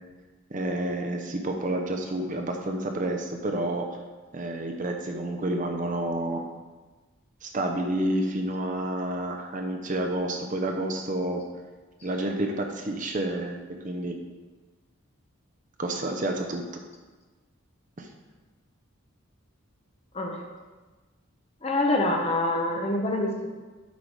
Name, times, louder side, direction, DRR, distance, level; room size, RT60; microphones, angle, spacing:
voice 1, 0.5-3.9 4.3-6.4 7.4-11.4 12.0-13.6 13.8-14.2 15.8-16.6 18.0-18.1, right 1 dB, 35° right, 3 dB, 0.7 m, -29 dB
voice 2, 21.6-23.5, left 2 dB, 30° left, 1 dB, 0.9 m, -25 dB
8.2 x 4.7 x 5.0 m, 1.3 s
head